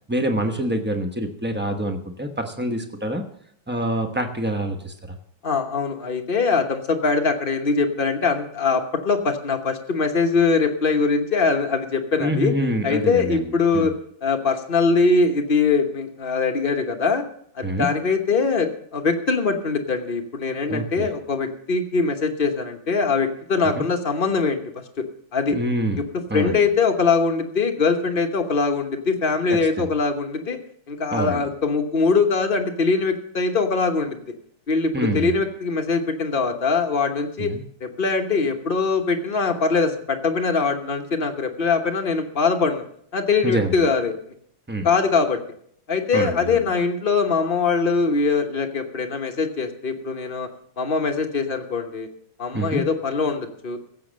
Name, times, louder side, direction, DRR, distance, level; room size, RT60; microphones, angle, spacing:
voice 1, 0.1-3.2 3.7-5.2 12.2-13.4 13.7-13.9 17.6-17.9 20.7-21.1 23.8-23.9 25.5-26.0 26.3-26.6 29.5-29.9 31.1-31.5 34.9-35.3 37.4-37.6 43.4-43.7 44.7-44.9 46.1-46.6 52.5-52.8, right 1 dB, 15° right, 5 dB, 0.4 m, -26 dB
voice 2, 5.4-12.5 12.8-13.9 14.2-17.2 17.5-25.0 25.3-25.6 25.9-30.6 30.9-34.2 34.7-37.5 37.8-42.8 43.1-44.1 44.8-45.4 45.9-50.5 50.8-52.1 52.4-53.8, left 4 dB, 35° left, 4 dB, 0.9 m, -22 dB
16.0 x 7.6 x 6.3 m, 0.67 s
omnidirectional pair, 2.3 m